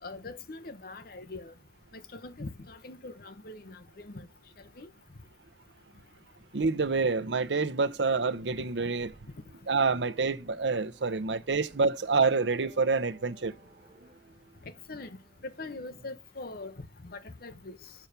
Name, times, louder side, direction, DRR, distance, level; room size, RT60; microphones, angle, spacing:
voice 1, 0.0-1.5 1.9-4.3 4.8-4.9 14.6-15.2 15.4-17.9, left 2 dB, 55° left, 0.9 m, -42 dB
voice 2, 6.5-9.1 9.7-13.5, right 4 dB, 85° right, 0.8 m, -27 dB
sound 1, 9.1-16.2, equal, 50° right, 2.3 m, -57 dB
7.1 x 5.9 x 6.7 m
head